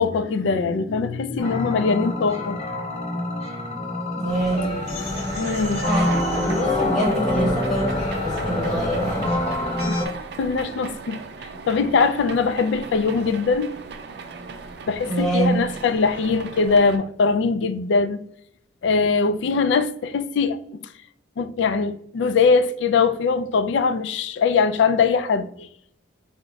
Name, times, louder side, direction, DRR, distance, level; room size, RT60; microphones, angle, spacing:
voice 1, 0.0-2.6 5.4-5.8 9.9-10.0 10.4-11.2 11.6-13.7 14.9-18.2 18.8-20.9 21.4-25.7, left 4 dB, 75° left, 0.3 m, -21 dB
sound 1, 1.4-10.1, left 1 dB, 35° left, 0.8 m, -26 dB
voice 2, 4.2-4.7 5.9-8.0 8.2-9.3 15.0-15.7, right 1 dB, ahead, 1.6 m, -25 dB
sound 2, 4.3-9.9, equal, 20° left, 1.5 m, -36 dB
sound 3, 4.9-17.0, right 4 dB, 60° right, 0.4 m, -38 dB
4.7 x 2.1 x 3.9 m
head